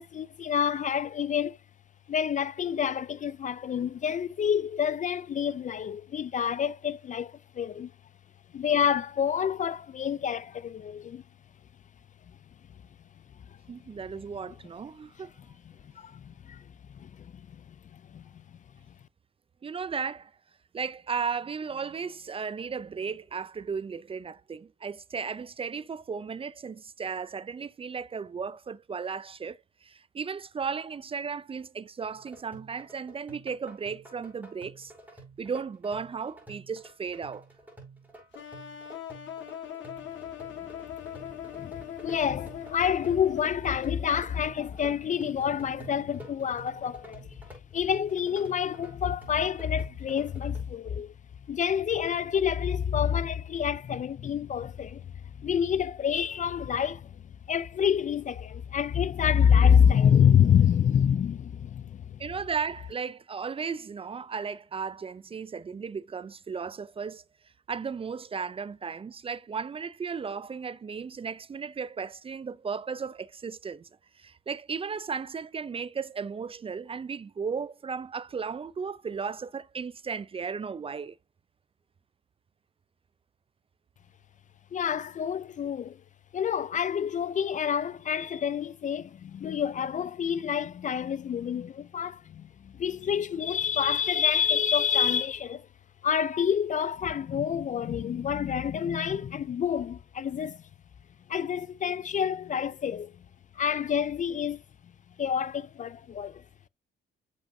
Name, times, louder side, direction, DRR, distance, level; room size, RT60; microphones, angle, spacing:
voice 1, 0.0-1.6 2.1-7.9 8.5-11.2 15.2-15.3 16.0-17.6 17.9-18.3 41.6-47.3 47.7-51.1 51.5-55.1 55.4-57.2 57.5-62.2 84.7-86.0 86.3-95.7 96.0-100.6 101.3-103.1 103.5-104.6 105.2-106.4, left 8 dB, 40° left, 0.4 m, -27 dB
voice 2, 13.7-15.3 19.6-20.3 20.7-34.9 35.4-37.5 62.2-67.2 67.7-73.9 74.2-81.2, right 5 dB, 30° right, 0.4 m, -35 dB
sound 1, 32.1-50.6, right 2 dB, 10° right, 5.0 m, -50 dB
sound 2, 38.3-44.2, left 9 dB, 70° left, 1.6 m, -41 dB
7.2 x 6.1 x 2.6 m
cardioid pair, 90°, 20 cm